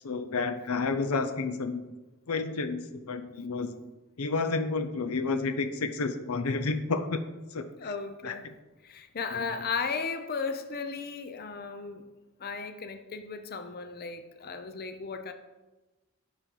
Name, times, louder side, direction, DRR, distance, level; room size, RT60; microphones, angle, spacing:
voice 1, 0.0-1.8 2.3-3.7 4.2-7.2 7.5-7.7 8.2-8.5 9.3-9.4, left 3 dB, 85° left, 9 dB, 0.6 m, -30 dB
voice 2, 7.8-8.5 8.8-12.1 12.4-15.3, left 5 dB, 45° left, 8 dB, 0.7 m, -35 dB
9.9 x 5.3 x 5.4 m, 1.1 s
head